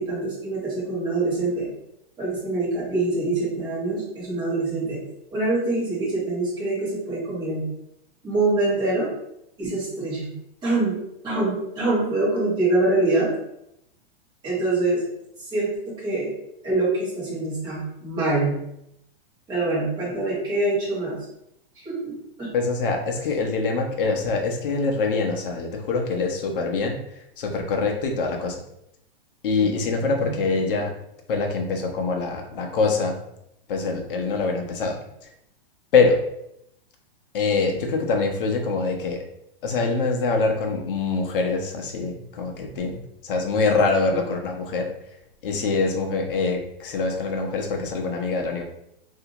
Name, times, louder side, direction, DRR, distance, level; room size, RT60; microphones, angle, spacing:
voice 1, 0.0-1.7 2.2-5.0 5.3-7.6 8.2-9.1 9.6-10.3 10.6-13.3 14.4-15.0 15.5-16.3 16.6-18.6 19.5-21.2 21.8-22.5 29.6-30.4 34.5-34.7 44.1-44.2, right 2 dB, 15° right, -9 dB, 1.4 m, -25 dB
voice 2, 22.5-27.0 27.4-28.6 29.4-30.9 31.3-33.2 33.7-35.3 35.9-36.2 37.3-39.2 39.6-44.9 45.4-48.6, left 4 dB, 60° left, 2 dB, 0.8 m, -24 dB
3.4 x 2.7 x 2.9 m, 0.78 s
supercardioid pair, 165°, 30 cm